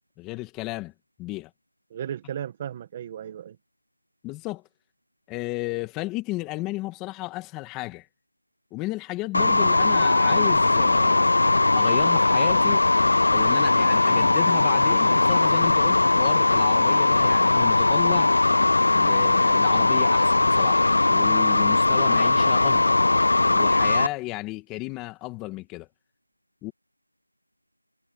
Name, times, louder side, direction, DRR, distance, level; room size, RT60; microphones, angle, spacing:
voice 1, 0.2-0.9 1.2-1.5 4.2-4.6 5.3-8.1 8.7-11.3 11.7-12.8 13.3-18.4 18.9-23.0 23.5-25.9 26.6-26.7, left 20 dB, 5° left, 2.0 m, -33 dB
voice 2, 1.9-3.6, right 9 dB, 15° right, 1.4 m, -35 dB
sound 1, 9.3-24.1, left 2 dB, 45° left, 0.3 m, -19 dB
figure-of-eight pair, 175°, 0 cm